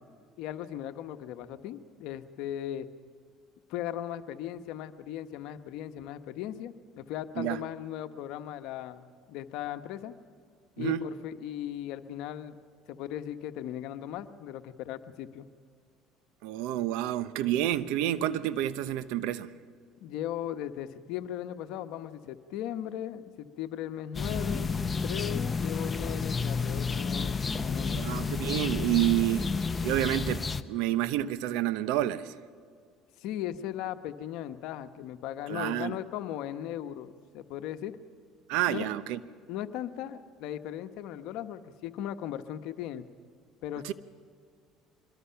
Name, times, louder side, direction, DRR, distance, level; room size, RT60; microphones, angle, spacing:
voice 1, 0.4-2.9 3.7-10.1 10.8-12.6 12.9-15.5 20.0-28.0 33.2-38.0 38.7-38.9 39.5-43.0 43.6-43.9, left 11 dB, 75° left, 1.1 m, -37 dB
voice 2, 16.4-19.5 27.9-29.5 29.8-32.3 35.5-36.0 38.5-39.2 43.8-43.9, right 13 dB, 80° right, 0.9 m, -29 dB
sound 1, 24.1-30.6, left 4 dB, 25° left, 0.9 m, -31 dB
24.5 x 22.0 x 5.8 m
supercardioid pair, 95°, 0 cm